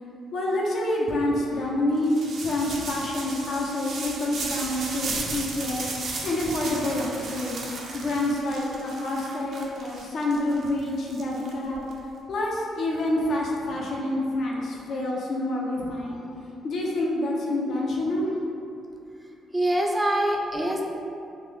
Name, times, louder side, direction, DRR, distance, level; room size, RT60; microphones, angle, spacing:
voice 1, 0.3-2.1 2.4-7.6 7.9-11.8 12.3-16.3 16.6-18.3, left 1 dB, 65° left, -3 dB, 0.6 m, -27 dB
sound 1, 2.0-11.9, right 3 dB, 65° right, 0.5 m, -35 dB
voice 2, 19.5-20.8, right 1 dB, 15° right, 0 dB, 0.5 m, -24 dB
3.1 x 2.6 x 3.6 m, 2.6 s
cardioid pair, 90°, 0 cm